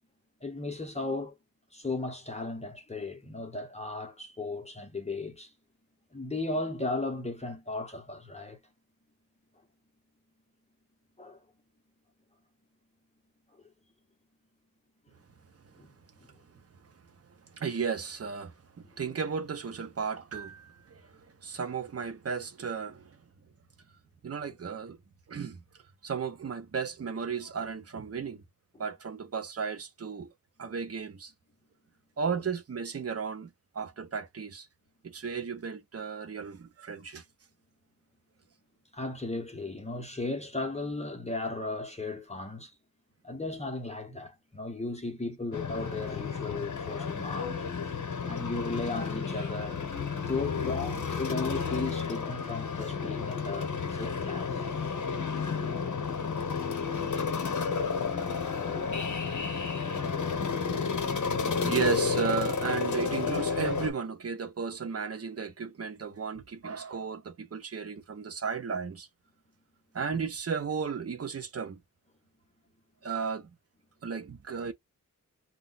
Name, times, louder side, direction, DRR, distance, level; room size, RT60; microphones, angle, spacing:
voice 1, 0.4-1.3 1.7-5.5 6.1-8.6 11.2-11.4 13.6-13.7 15.8-15.9 32.3-32.4 38.9-42.7 43.2-47.6 48.2-54.7, left 2 dB, 20° left, 0.8 m, -36 dB
voice 2, 17.6-18.5 19.0-23.2 24.2-25.0 25.3-25.6 26.0-28.4 28.8-30.3 30.6-31.3 32.2-34.7 35.0-37.2 61.6-69.1 69.9-71.8 73.0-73.5 74.0-74.7, right 6 dB, 45° right, 0.7 m, -34 dB
sound 1, 45.5-63.9, left 5 dB, 65° left, 0.9 m, -31 dB
2.4 x 2.2 x 3.8 m
wide cardioid pair, 150°, 34 cm